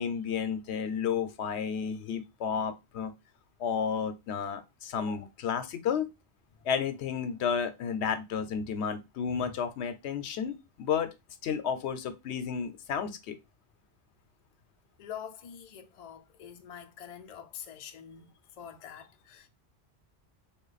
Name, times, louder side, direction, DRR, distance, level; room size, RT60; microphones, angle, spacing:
voice 1, 0.0-3.1 3.6-6.1 6.6-11.1 11.4-13.4, left 7 dB, 80° left, 0.8 m, -32 dB
voice 2, 15.0-19.5, left 8 dB, 55° left, 0.4 m, -46 dB
3.1 x 2.2 x 3.9 m
omnidirectional pair, 1.1 m